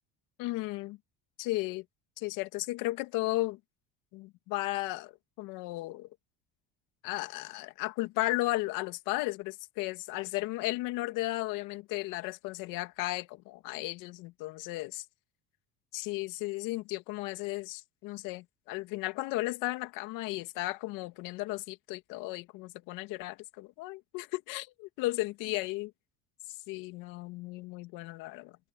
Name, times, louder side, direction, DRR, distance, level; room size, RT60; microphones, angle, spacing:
voice 1, 0.4-1.0 1.4-1.8 2.2-3.6 4.1-6.1 7.0-15.1 15.9-25.9 26.7-28.6, left 19 dB, 75° left, 2.5 m, -35 dB
cardioid pair, 115°, 33 cm